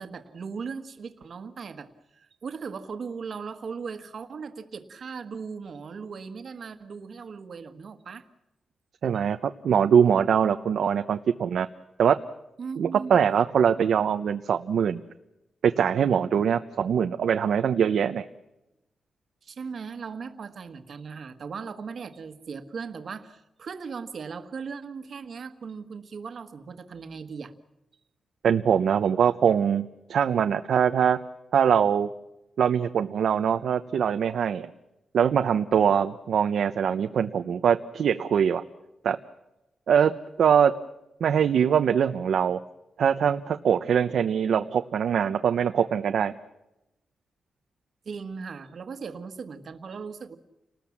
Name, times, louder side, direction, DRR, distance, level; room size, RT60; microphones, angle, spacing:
voice 1, 0.0-8.3 12.6-13.2 19.4-27.5 48.0-50.4, right 5 dB, 50° right, 10 dB, 1.6 m, -38 dB
voice 2, 9.0-9.4 9.6-11.7 12.0-12.2 12.8-15.0 15.6-18.3 28.4-31.2 31.5-32.1 32.6-34.7 35.1-38.6 39.0-39.2 39.9-40.7 41.2-42.6 43.0-46.3, right 8 dB, 70° right, 8 dB, 0.8 m, -23 dB
29.5 x 20.0 x 7.3 m, 0.95 s
wide cardioid pair, 160°, 0 cm